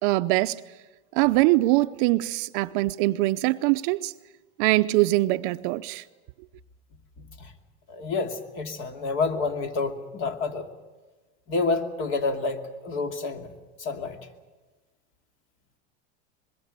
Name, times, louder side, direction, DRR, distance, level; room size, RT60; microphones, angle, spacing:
voice 1, 0.0-0.6 1.1-4.1 4.6-6.0, right 19 dB, 50° right, 0.7 m, -23 dB
voice 2, 7.2-7.5 7.9-10.7 11.5-13.5 13.8-14.2, left 3 dB, 40° left, 2.6 m, -29 dB
24.5 x 22.0 x 6.8 m
supercardioid pair, 140°, 33 cm